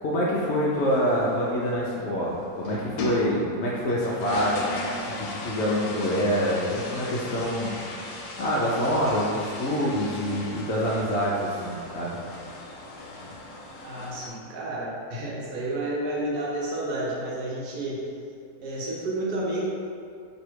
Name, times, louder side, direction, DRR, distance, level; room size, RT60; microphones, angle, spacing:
voice 1, 0.0-4.6 5.2-7.7 8.4-12.2, equal, 70° left, -6 dB, 0.6 m, -26 dB
sound 1, 0.7-2.2 2.5-3.4 3.6-14.3, left 2 dB, 90° left, 1.2 m, -37 dB
voice 2, 13.8-18.0 18.6-19.6, right 1 dB, 75° right, -6 dB, 1.3 m, -30 dB
3.2 x 2.7 x 4.5 m, 2.4 s
omnidirectional pair, 1.7 m